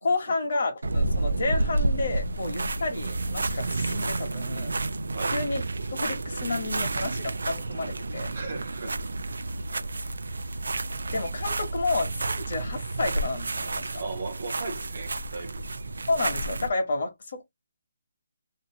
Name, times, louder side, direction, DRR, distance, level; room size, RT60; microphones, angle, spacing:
voice 1, 0.0-4.7 5.3-5.6 5.9-8.3 11.1-13.9 16.1-17.4, left 3 dB, 40° left, 1.0 m, -30 dB
sound 1, 0.8-16.7, right 2 dB, 85° right, 0.4 m, -30 dB
voice 2, 5.1-5.4 8.3-9.1 14.0-15.7, right 3 dB, 35° right, 0.7 m, -37 dB
2.7 x 2.5 x 2.6 m
hypercardioid pair, 180°, 0 cm